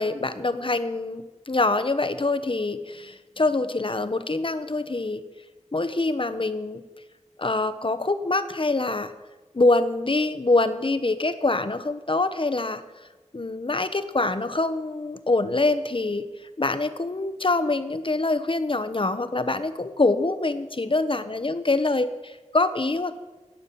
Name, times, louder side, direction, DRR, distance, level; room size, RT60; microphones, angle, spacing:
voice 1, 0.0-5.2 5.7-6.8 7.4-9.1 9.5-12.8 13.3-16.3 16.6-23.2, left 2 dB, 45° left, 11 dB, 1.0 m, -25 dB
17.5 x 7.6 x 6.9 m, 1.2 s
wide cardioid pair, 60°, 12 cm